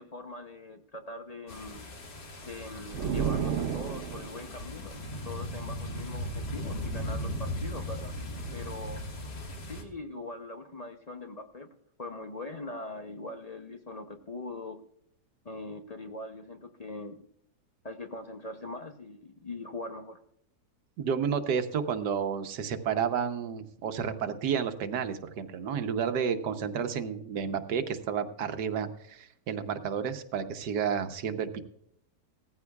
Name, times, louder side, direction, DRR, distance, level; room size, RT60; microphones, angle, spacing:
voice 1, 0.0-1.8 2.5-8.1 8.5-9.0 9.7-11.7 12.0-14.8 15.4-17.2 17.8-20.2, left 2 dB, 50° left, 5 dB, 0.4 m, -42 dB
sound 1, 1.5-9.8, left 1 dB, 70° left, 2.4 m, -38 dB
sound 2, 2.9-4.6, right 7 dB, 55° right, 0.9 m, -31 dB
voice 2, 21.0-31.6, right 7 dB, 80° right, 8 dB, 1.5 m, -31 dB
18.0 x 14.5 x 2.3 m, 0.72 s
omnidirectional pair, 1.8 m